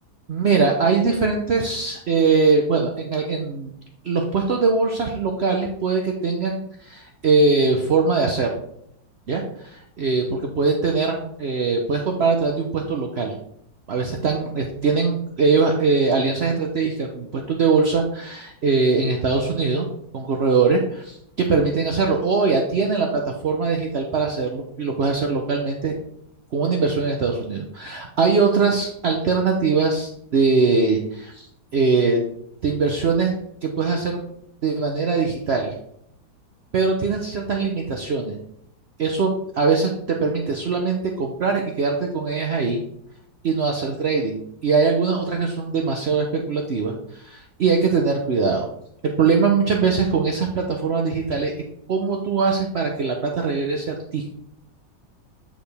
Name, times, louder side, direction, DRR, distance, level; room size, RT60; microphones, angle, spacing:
voice 1, 0.3-3.7 4.0-8.5 9.3-13.3 13.9-19.9 20.1-25.9 26.5-31.5 31.7-32.2 32.6-33.4 33.6-34.2 34.6-35.7 36.7-38.3 39.0-42.8 43.4-48.7 49.2-51.5 51.9-54.2, right 4 dB, 60° right, 2 dB, 0.6 m, -21 dB
9.0 x 5.0 x 3.4 m, 0.73 s
omnidirectional pair, 2.0 m